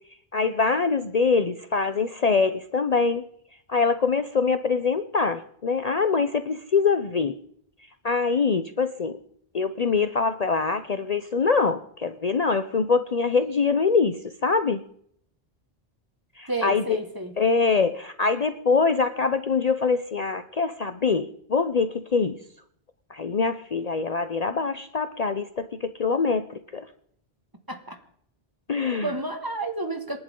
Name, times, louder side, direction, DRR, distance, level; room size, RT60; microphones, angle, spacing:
voice 1, 0.3-3.2 3.7-7.4 8.0-9.2 9.5-14.8 16.4-17.0 17.4-22.4 23.1-26.9 28.7-29.1, left 4 dB, 45° left, 10 dB, 0.7 m, -24 dB
voice 2, 16.5-17.4 27.7-28.0 29.0-30.2, right 2 dB, 20° right, 6 dB, 1.8 m, -31 dB
28.0 x 11.0 x 3.8 m, 0.68 s
omnidirectional pair, 1.0 m